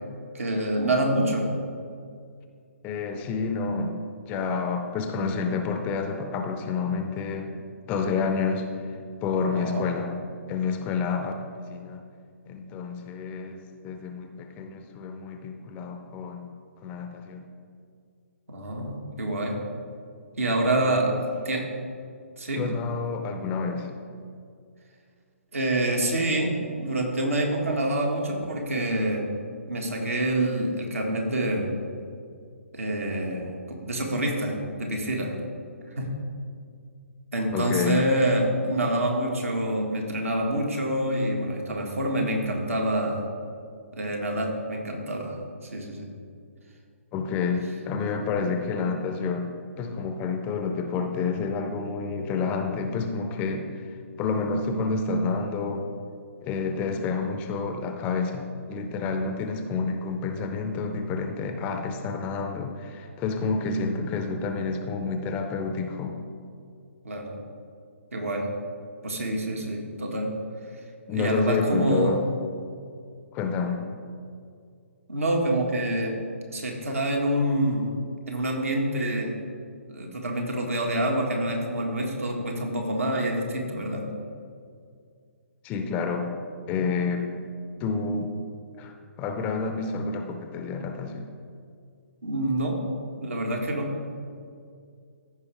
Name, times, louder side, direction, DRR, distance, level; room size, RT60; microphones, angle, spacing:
voice 1, 0.3-1.5 9.5-9.9 18.5-19.5 20.4-21.1 21.5-21.7 22.4-22.7 25.5-29.3 29.7-31.7 32.7-35.4 36.0-36.1 37.3-43.2 43.9-45.4 45.7-46.1 67.0-67.3 68.1-68.5 69.0-70.3 71.1-72.2 75.1-76.2 76.5-77.9 78.3-79.3 79.9-84.1 92.2-92.8 93.2-93.9, right 1 dB, 75° right, 0 dB, 1.8 m, -26 dB
voice 2, 2.8-4.0 4.3-7.5 7.9-8.8 9.2-10.1 10.5-12.0 12.5-16.5 16.8-17.4 20.8-21.3 22.5-23.9 37.5-38.0 47.1-53.7 54.2-55.9 56.4-66.2 71.1-72.2 73.3-73.8 85.6-86.3 86.7-87.3 87.8-88.3 88.8-91.3, left 4 dB, 20° left, 6 dB, 0.6 m, -29 dB
15.0 x 5.2 x 3.4 m, 2.3 s
figure-of-eight pair, 135°, 8 cm